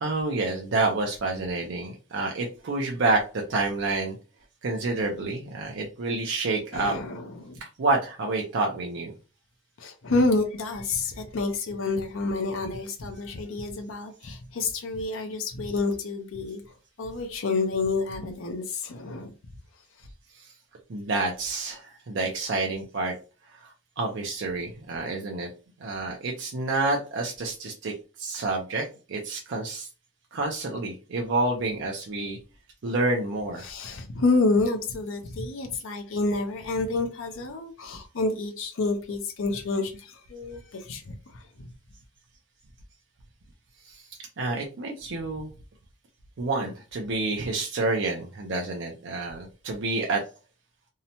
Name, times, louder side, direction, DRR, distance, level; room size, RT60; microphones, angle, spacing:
voice 1, 0.0-4.2 4.6-7.0 7.8-9.1 20.3-20.5 20.9-23.1 23.5-25.5 25.8-29.9 30.3-32.4 32.8-33.7 43.8-44.1 44.4-45.5 46.4-50.2, right 3 dB, 55° right, 0 dB, 0.5 m, -28 dB
voice 2, 6.7-7.6 9.8-16.6 17.0-19.3 33.6-41.7, left 3 dB, 65° left, 4 dB, 0.5 m, -28 dB
2.7 x 2.1 x 2.8 m, 0.33 s
head